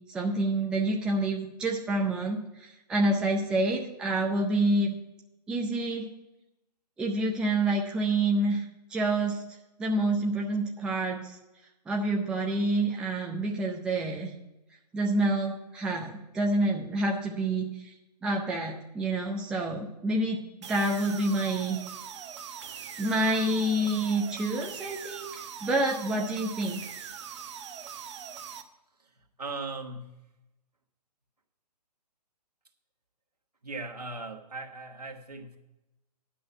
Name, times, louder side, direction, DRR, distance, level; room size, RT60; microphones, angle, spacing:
voice 1, 0.0-4.9 5.5-6.1 7.0-8.7 8.9-9.4 9.8-11.4 11.9-14.3 14.9-17.9 18.2-21.8 23.0-26.8, right 2 dB, 5° right, 0 dB, 0.5 m, -28 dB
sound 1, 20.6-28.6, right 7 dB, 45° right, 0.8 m, -42 dB
voice 2, 29.4-30.2 33.6-35.6, right 3 dB, 70° right, 3 dB, 1.7 m, -38 dB
10.0 x 6.2 x 6.6 m, 0.95 s
figure-of-eight pair, 130°, 21 cm